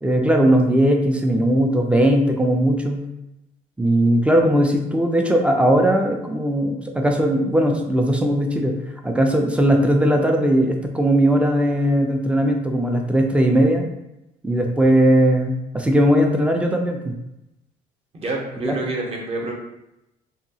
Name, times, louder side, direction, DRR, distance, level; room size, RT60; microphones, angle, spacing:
voice 1, 0.0-3.0 3.8-8.7 9.0-13.9 14.4-17.1 18.6-18.8, right 1 dB, 5° right, 2 dB, 0.3 m, -18 dB
voice 2, 18.1-19.5, right 2 dB, 35° right, 0 dB, 0.7 m, -27 dB
2.8 x 2.3 x 2.7 m, 0.89 s
cardioid pair, 110°, 17 cm